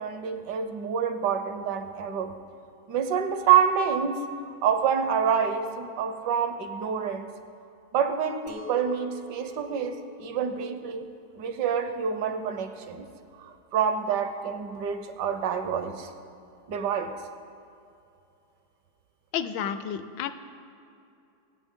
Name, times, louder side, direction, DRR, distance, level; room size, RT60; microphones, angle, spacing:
voice 1, 0.0-2.3 2.9-4.2 4.6-7.3 7.9-11.1 11.4-13.1 13.4-16.1 16.7-17.1, right 7 dB, 65° right, 8 dB, 1.2 m, -27 dB
Chink clink, 8.5-13.6, left 4 dB, 50° left, 0.6 m, -47 dB
voice 2, 19.3-20.3, left 8 dB, 75° left, 11 dB, 1.2 m, -31 dB
19.0 x 8.7 x 3.7 m, 2.6 s
omnidirectional pair, 2.1 m